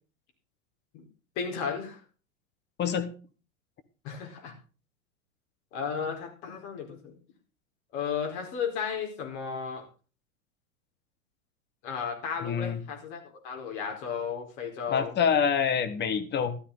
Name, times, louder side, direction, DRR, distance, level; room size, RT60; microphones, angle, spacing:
voice 1, 1.4-2.0 4.0-4.5 5.7-7.1 7.9-9.8 11.8-15.2, left 6 dB, 45° left, 2 dB, 4.5 m, -34 dB
voice 2, 12.4-12.8 14.9-16.6, left 7 dB, 25° left, 11 dB, 1.5 m, -26 dB
13.0 x 13.0 x 4.0 m, 0.36 s
figure-of-eight pair, 95°, 42 cm